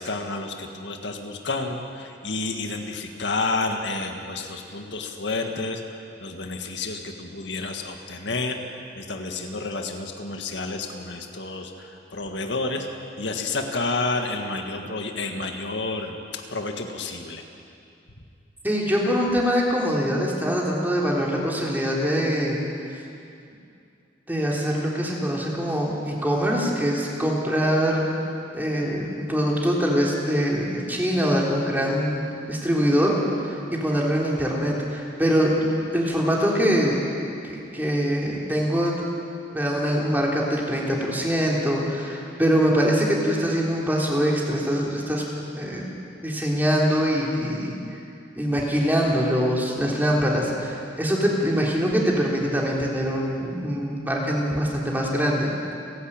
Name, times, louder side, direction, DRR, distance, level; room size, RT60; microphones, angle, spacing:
voice 1, 0.0-5.8 6.2-8.6 9.0-12.9 13.2-17.4, left 3 dB, 80° left, 4 dB, 1.8 m, -30 dB
voice 2, 18.6-22.6 22.9-23.0 24.3-28.1 28.5-33.2 33.4-35.7 35.9-37.0 37.4-39.0 39.5-45.2 45.5-45.8 46.2-47.8 48.4-55.5, equal, 10° right, -3 dB, 3.4 m, -23 dB
30.0 x 11.5 x 8.9 m, 2.5 s
head